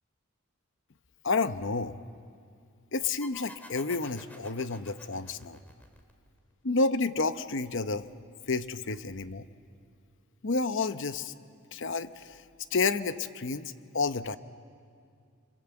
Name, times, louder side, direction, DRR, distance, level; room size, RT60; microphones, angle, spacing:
voice 1, 1.2-2.0 2.9-5.6 6.6-8.1 8.5-9.5 10.4-11.3 11.7-12.4 12.7-14.4, left 3 dB, 55° left, 11 dB, 0.9 m, -30 dB
sound 1, 3.2-6.5, left 1 dB, 10° left, 2.0 m, -50 dB
28.0 x 27.5 x 7.9 m, 2.3 s
head